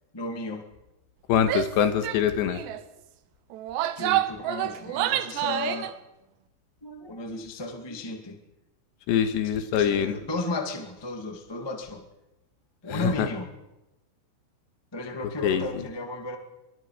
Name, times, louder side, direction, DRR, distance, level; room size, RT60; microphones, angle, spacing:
voice 1, 0.1-0.6 4.0-5.9 6.8-8.4 9.4-12.1 12.8-13.5 14.9-16.4, left 2 dB, 40° left, 4 dB, 0.3 m, -34 dB
voice 2, 1.3-2.6 9.1-10.2 12.9-13.3 15.4-15.7, left 8 dB, 80° left, 9 dB, 3.5 m, -24 dB
Female speech woman speaking / Yell, 1.4-1.7 2.0-2.2 2.5-2.8 3.5-5.9, right 13 dB, 80° right, 3.1 m, -28 dB
24.5 x 24.0 x 4.9 m, 0.96 s
omnidirectional pair, 5.1 m